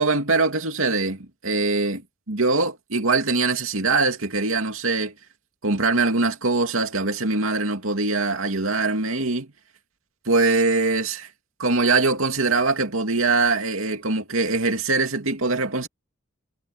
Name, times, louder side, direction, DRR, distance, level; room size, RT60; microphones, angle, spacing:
voice 1, 0.0-2.0 2.3-5.1 5.6-9.5 10.3-11.3 11.6-15.9, right 3 dB, 80° right, 2.6 m, -22 dB
head